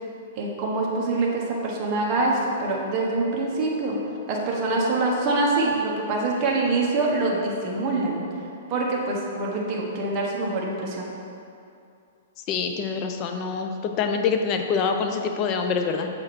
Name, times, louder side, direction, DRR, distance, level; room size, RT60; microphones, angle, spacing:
voice 1, 0.4-4.0 4.3-8.2 8.7-11.1, right 2 dB, 30° right, -3 dB, 1.3 m, -25 dB
voice 2, 12.5-16.1, left 5 dB, 30° left, 5 dB, 0.6 m, -25 dB
7.4 x 5.0 x 4.3 m, 2.5 s
hypercardioid pair, 150°, 0 cm